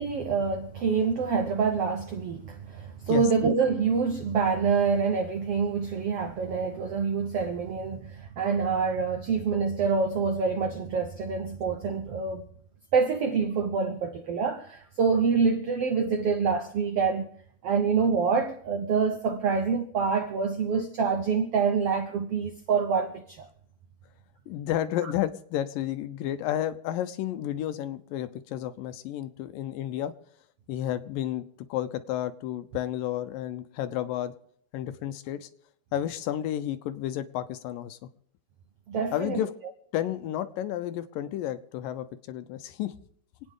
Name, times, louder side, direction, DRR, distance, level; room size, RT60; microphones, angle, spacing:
voice 1, 0.0-12.5 12.9-17.3 17.6-23.5 25.0-25.1 38.9-39.4, right 5 dB, 75° right, 1.4 m, -26 dB
voice 2, 24.5-30.1 30.7-34.3 34.7-35.5 35.9-38.0 39.1-39.5 39.9-42.9, left 12 dB, 80° left, 2.4 m, -31 dB
27.5 x 9.2 x 3.7 m
omnidirectional pair, 4.0 m